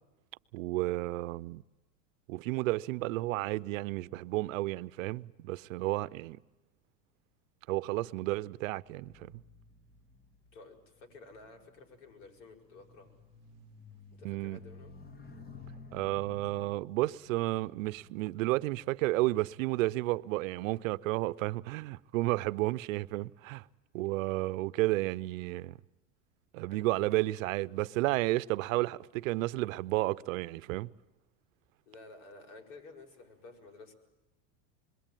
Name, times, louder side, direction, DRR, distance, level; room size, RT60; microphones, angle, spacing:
voice 1, 0.5-1.6 2.3-6.4 7.7-9.3 14.2-14.6 15.9-23.6 23.9-25.8 26.5-30.9, right 19 dB, 75° right, 0.8 m, -32 dB
Single Motorcycle Passby, 8.8-20.4 21.2-21.5, left 4 dB, 25° left, 2.2 m, -55 dB
voice 2, 10.5-13.2 14.1-14.9 26.7-27.9 31.9-33.9, left 3 dB, 75° left, 6.5 m, -53 dB
27.0 x 22.0 x 9.2 m
supercardioid pair, 130°, 39 cm